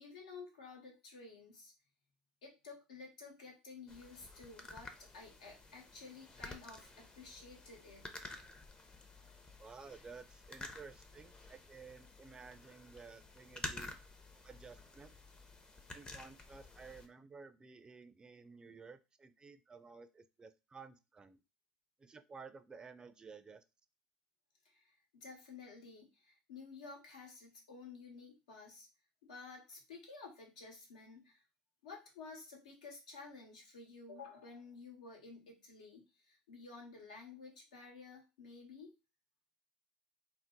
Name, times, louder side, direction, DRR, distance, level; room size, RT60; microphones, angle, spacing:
voice 1, 0.0-1.7 2.4-8.1 24.6-28.9 29.2-31.4 31.8-38.9, left 4 dB, 80° left, 0 dB, 1.1 m, -53 dB
sound 1, 3.9-17.1, left 2 dB, 25° left, 0.6 m, -51 dB
voice 2, 9.6-14.0 14.4-15.1 15.9-21.4 22.0-23.6, right 5 dB, 20° right, 10 dB, 0.4 m, -54 dB
2.6 x 2.1 x 3.7 m, 0.29 s
hypercardioid pair, 80°, 4 cm